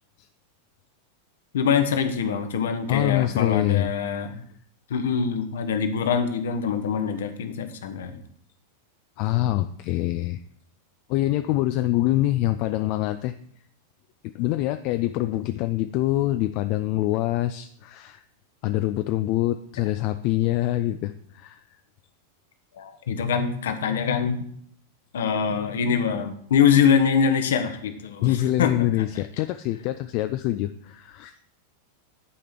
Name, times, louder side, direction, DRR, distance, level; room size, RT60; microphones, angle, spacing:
voice 1, 1.5-4.4 4.9-8.2 22.8-24.4 25.1-29.0, left 7 dB, 60° left, 8 dB, 1.0 m, -24 dB
voice 2, 2.9-3.9 9.2-10.4 11.1-13.3 14.2-18.2 18.6-21.6 28.2-31.3, left 15 dB, 45° left, 10 dB, 0.4 m, -25 dB
9.9 x 5.0 x 5.9 m, 0.65 s
figure-of-eight pair, 90°, 0 cm